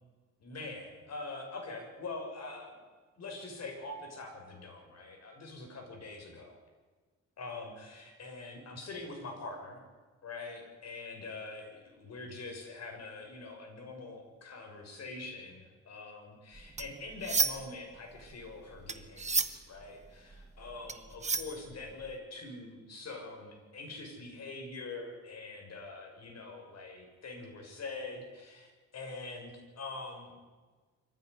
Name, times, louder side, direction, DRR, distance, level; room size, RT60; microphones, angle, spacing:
voice 1, 0.4-2.8 3.2-6.6 7.4-9.8 10.2-28.7 28.9-30.4, left 3 dB, 60° left, 2 dB, 6.6 m, -44 dB
sound 1, 16.5-17.8 18.1-22.1, right 4 dB, 25° right, 1.3 m, -33 dB
23.5 x 15.5 x 9.8 m, 1.4 s
cardioid pair, 120°, 29 cm